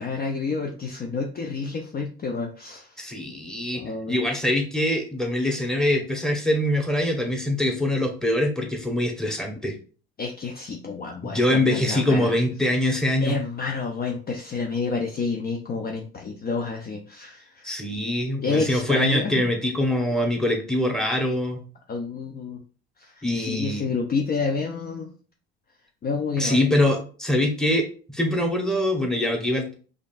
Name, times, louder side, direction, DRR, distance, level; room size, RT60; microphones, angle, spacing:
voice 1, 0.0-3.0 3.7-4.2 10.2-12.3 13.2-17.7 18.4-19.4 21.9-22.6 23.0-25.1 26.0-26.7, left 4 dB, 30° left, 2 dB, 0.6 m, -29 dB
voice 2, 3.0-3.8 4.1-9.7 11.2-13.3 17.6-21.6 23.2-23.9 26.4-29.7, left 1 dB, ahead, 2 dB, 1.1 m, -24 dB
5.0 x 2.5 x 2.5 m, 0.40 s
hypercardioid pair, 65°, 31 cm